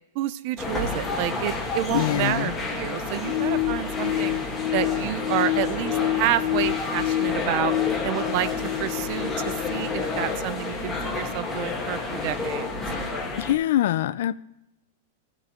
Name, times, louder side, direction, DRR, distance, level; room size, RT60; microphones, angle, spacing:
voice 1, 0.2-4.4 4.7-7.7 8.0-8.5 8.8-12.7, right 13 dB, 35° right, 0.4 m, -29 dB
sound 1, 0.6-13.5, left 3 dB, 5° left, 1.3 m, -30 dB
voice 2, 1.9-2.5 13.4-14.3, left 13 dB, 55° left, 0.4 m, -24 dB
sound 2, 3.2-10.3, left 15 dB, 40° left, 0.8 m, -28 dB
16.0 x 7.2 x 3.7 m
supercardioid pair, 175°, 0 cm